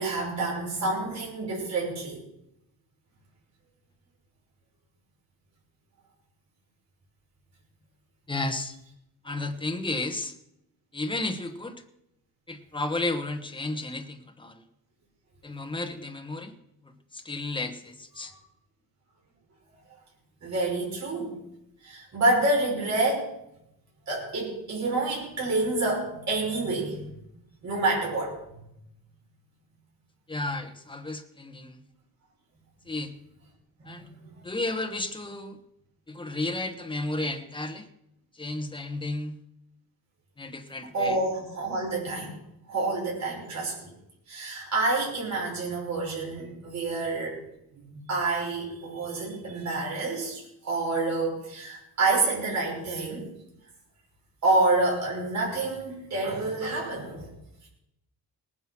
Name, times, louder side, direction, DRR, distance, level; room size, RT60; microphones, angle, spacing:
voice 1, 0.0-2.2 20.4-21.4 21.8-23.3 24.1-27.0 27.6-28.4 33.8-33.9 34.2-34.4 40.9-42.3 42.7-43.9 44.3-47.4 47.7-53.3 54.4-57.3, right 2 dB, 45° right, -3 dB, 5.9 m, -28 dB
voice 2, 8.3-8.8 9.2-10.3 10.9-11.8 12.5-14.6 15.4-16.5 16.8-18.3 30.3-31.8 32.9-33.1 33.9-34.1 34.4-35.6 36.1-37.9 38.3-39.4 40.4-41.2, left 2 dB, 15° left, 6 dB, 1.1 m, -33 dB
19.0 x 9.7 x 6.0 m, 0.82 s
wide cardioid pair, 180°, 38 cm